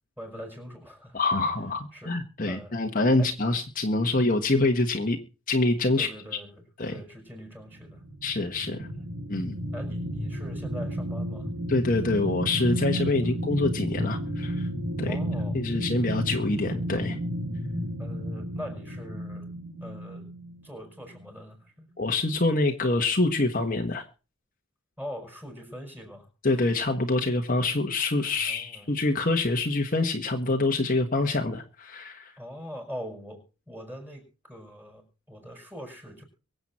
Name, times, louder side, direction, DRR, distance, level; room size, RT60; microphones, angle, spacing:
voice 1, 0.2-1.2 1.9-2.1 2.4-2.8 3.2-3.3 6.0-6.6 6.9-8.0 8.8-9.1 9.7-11.5 13.2-13.4 15.0-15.6 18.0-19.5 19.8-20.3 20.6-21.9 25.0-26.3 28.4-28.9 32.4-33.4 33.7-36.2, equal, 10° right, 3 dB, 5.9 m, -42 dB
voice 2, 1.1-5.2 5.5-6.1 6.8-6.9 8.2-8.9 9.3-9.6 11.7-14.7 15.0-15.2 15.5-17.2 22.0-24.0 26.4-32.3, left 2 dB, 40° left, 3 dB, 1.4 m, -26 dB
sound 1, 7.7-20.7 21.1-21.3, equal, 55° right, 2.3 m, -32 dB
24.0 x 8.1 x 4.3 m, 0.35 s
head